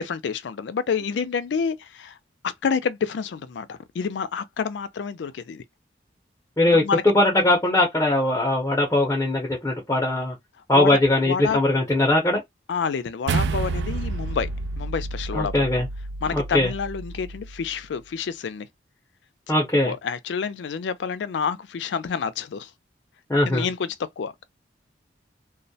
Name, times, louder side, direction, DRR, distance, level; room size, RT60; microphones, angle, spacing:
voice 1, 0.0-2.2 2.4-5.6 6.7-7.0 10.7-11.6 12.7-14.5 14.8-15.6 16.2-18.7 19.9-22.7 23.4-24.4, left 6 dB, 90° left, 0.4 m, -28 dB
voice 2, 6.6-10.3 10.7-12.4 15.3-15.9 16.3-16.7 19.5-19.9 23.3-23.7, left 1 dB, 15° left, 0.6 m, -20 dB
sound 1, 13.3-17.8, right 3 dB, 80° right, 0.4 m, -30 dB
2.2 x 2.1 x 2.6 m
head